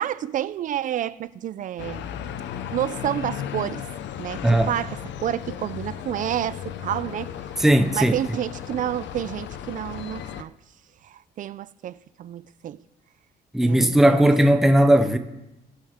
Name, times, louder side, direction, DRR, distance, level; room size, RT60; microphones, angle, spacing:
voice 1, 0.0-2.1 2.7-3.9 4.2-7.3 7.9-10.5 11.0-12.8 13.6-14.2, right 11 dB, 45° right, 0.4 m, -29 dB
sound 1, 1.8-10.4, left 9 dB, 85° left, 0.6 m, -35 dB
voice 2, 7.6-8.2 13.5-15.2, right 1 dB, ahead, 0.6 m, -17 dB
21.0 x 7.5 x 3.6 m
cardioid pair, 170°, 18 cm